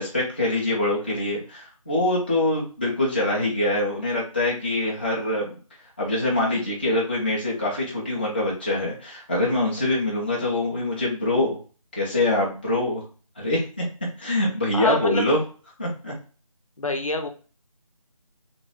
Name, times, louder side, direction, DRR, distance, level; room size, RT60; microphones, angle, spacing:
voice 1, 0.0-5.6 6.0-11.6 11.9-13.0 13.4-13.6 14.2-15.4 15.8-16.1, left 1 dB, 15° left, -5 dB, 0.5 m, -24 dB
voice 2, 14.7-15.3 16.8-17.3, left 2 dB, 65° left, 5 dB, 0.8 m, -26 dB
3.0 x 3.0 x 2.8 m, 0.38 s
figure-of-eight pair, 165°, 19 cm